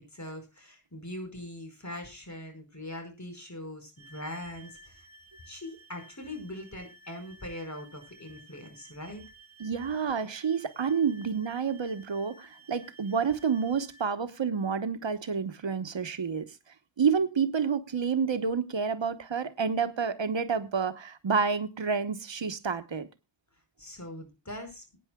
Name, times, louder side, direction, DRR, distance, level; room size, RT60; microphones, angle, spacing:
voice 1, 0.1-5.1 5.4-9.2 23.8-24.8, left 1 dB, 40° left, 5.1 m, -41 dB
sound 1, 4.0-14.1, right 1 dB, 10° left, 6.3 m, -55 dB
voice 2, 9.6-16.5 17.0-23.1, right 6 dB, 80° right, 1.1 m, -29 dB
22.5 x 9.4 x 2.3 m
wide cardioid pair, 75°, 44 cm